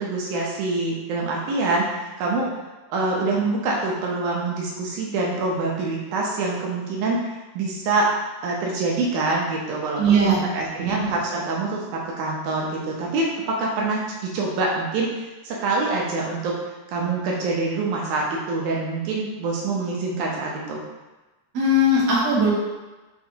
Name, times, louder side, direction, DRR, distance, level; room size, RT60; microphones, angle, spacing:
voice 1, 0.0-2.5 2.9-7.2 7.6-8.1 8.4-15.1 15.4-16.5 16.9-20.8, right 3 dB, 90° right, -3 dB, 2.2 m, -25 dB
voice 2, 10.0-10.4 10.8-10.9 21.5-22.5, equal, 60° right, -7 dB, 2.2 m, -19 dB
7.3 x 2.5 x 2.7 m, 1.1 s
omnidirectional pair, 3.4 m